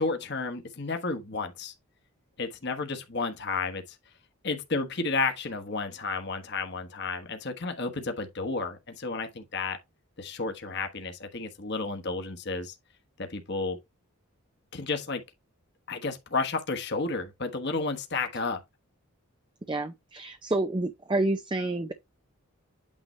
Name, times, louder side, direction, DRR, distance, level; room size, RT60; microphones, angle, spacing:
voice 1, 0.0-1.7 2.4-3.8 4.4-9.8 10.2-12.7 13.2-13.8 14.7-15.2 15.9-18.6, left 3 dB, 50° left, 1.3 m, -32 dB
voice 2, 19.7-21.9, right 2 dB, 20° right, 0.5 m, -29 dB
8.9 x 4.3 x 3.2 m
head